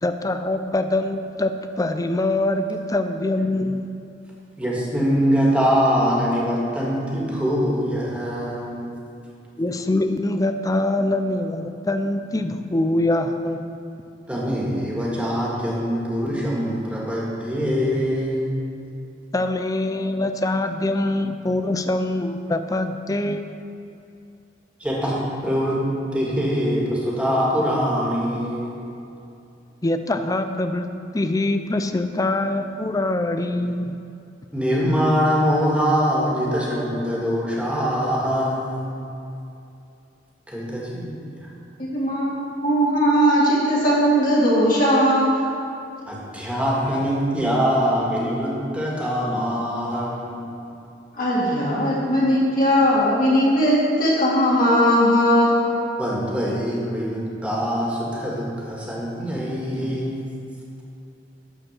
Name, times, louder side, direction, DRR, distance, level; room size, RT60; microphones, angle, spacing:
voice 1, 0.0-3.9 9.6-13.6 19.3-23.6 29.8-30.9 31.1-34.0, left 2 dB, 20° left, 8 dB, 0.4 m, -24 dB
voice 2, 4.6-9.0 14.3-18.5 24.8-25.8 26.1-28.7 34.5-39.0 40.5-41.5 46.1-50.5 56.0-60.3, equal, 5° right, -5 dB, 1.7 m, -23 dB
voice 3, 41.8-42.3 42.6-45.3 51.1-55.7, equal, 50° left, -7 dB, 2.1 m, -18 dB
12.0 x 4.4 x 6.5 m, 2.6 s
head